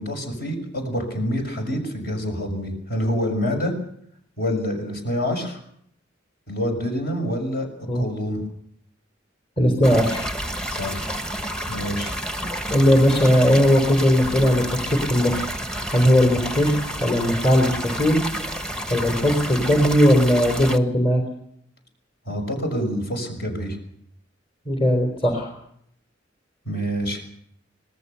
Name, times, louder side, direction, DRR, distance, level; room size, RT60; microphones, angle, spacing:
voice 1, 0.0-3.7 4.4-5.6 6.5-7.7 7.9-8.4 10.8-11.2 11.7-12.1 22.3-23.8 26.6-27.2, equal, 55° left, 4 dB, 6.6 m, -27 dB
voice 2, 9.6-10.3 12.7-15.5 15.9-18.2 18.9-21.2 24.7-25.5, equal, 30° left, 4 dB, 3.6 m, -18 dB
sound 1, 9.8-20.8, equal, 5° left, 1.2 m, -30 dB
26.0 x 19.0 x 6.9 m, 0.70 s
head